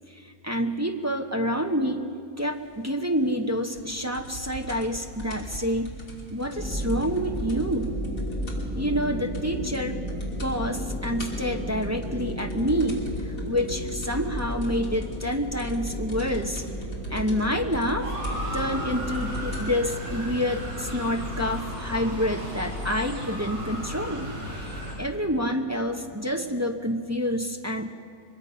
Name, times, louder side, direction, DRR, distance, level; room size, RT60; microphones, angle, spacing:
voice 1, 0.1-2.1 2.4-6.0 6.3-7.9 8.8-10.0 10.4-16.6 17.1-18.1 18.5-27.9, equal, 15° right, 4 dB, 0.8 m, -28 dB
sound 1, 3.7-8.8 9.0-9.1 9.3-9.8 10.1-10.5 10.9-19.7 20.5-20.6, equal, 55° left, 3.2 m, -40 dB
sound 2, 6.6-26.4, left 1 dB, 5° left, 4.1 m, -35 dB
Motor vehicle (road) / Siren, 18.0-24.9, equal, 70° right, 6.8 m, -35 dB
23.5 x 21.5 x 5.6 m, 2.1 s
omnidirectional pair, 1.7 m